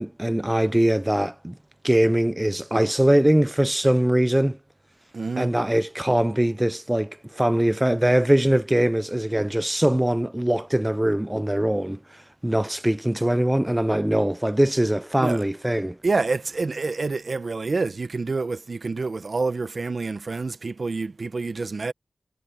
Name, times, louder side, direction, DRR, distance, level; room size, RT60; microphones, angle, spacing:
voice 1, 0.0-1.5 1.8-4.6 5.4-16.0, right 1 dB, 15° right, 0.5 m, -22 dB
voice 2, 5.1-5.5 15.2-15.4 16.0-21.9, right 3 dB, 60° right, 1.0 m, -27 dB
cardioid pair, 55°, 0 cm